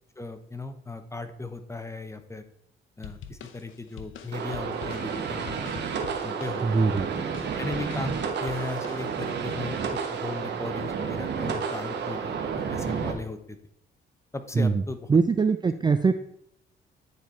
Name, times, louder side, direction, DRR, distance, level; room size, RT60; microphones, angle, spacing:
voice 1, 0.2-2.4 3.0-5.7 6.2-6.6 7.6-12.4 12.7-13.6 14.3-15.0, left 3 dB, 15° left, 9 dB, 0.9 m, -36 dB
sound 1, 3.0-9.5, left 7 dB, 80° left, 0.8 m, -45 dB
sound 2, 4.3-13.1, right 6 dB, 60° right, 1.4 m, -31 dB
voice 2, 6.6-7.1 14.6-14.8 15.1-16.1, right 4 dB, 20° right, 9 dB, 0.4 m, -22 dB
9.6 x 4.4 x 4.5 m, 0.73 s
cardioid pair, 90°, 20 cm